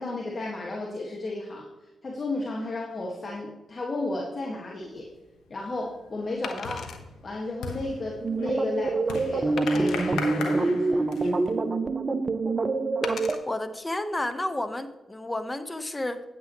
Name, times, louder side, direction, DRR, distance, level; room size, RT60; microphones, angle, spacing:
voice 1, 0.0-1.7 2.0-5.1 5.5-6.9 7.2-11.1, left 2 dB, 45° left, -1 dB, 1.7 m, -33 dB
Wood, 4.8-5.0 6.4-7.0 7.7-7.8 8.3-8.4 9.6-10.1 10.8-11.6 13.0-13.4 14.1-14.3, left 6 dB, 70° left, 0.9 m, -39 dB
sound 1, 5.0-5.4 5.7-11.5, left 4 dB, 90° left, 1.1 m, -38 dB
sound 2, 8.2-13.4, right 3 dB, 40° right, 0.7 m, -26 dB
voice 2, 13.5-16.2, left 1 dB, 20° left, 11 dB, 1.0 m, -31 dB
9.3 x 9.2 x 3.0 m, 1.1 s
supercardioid pair, 45°, 0 cm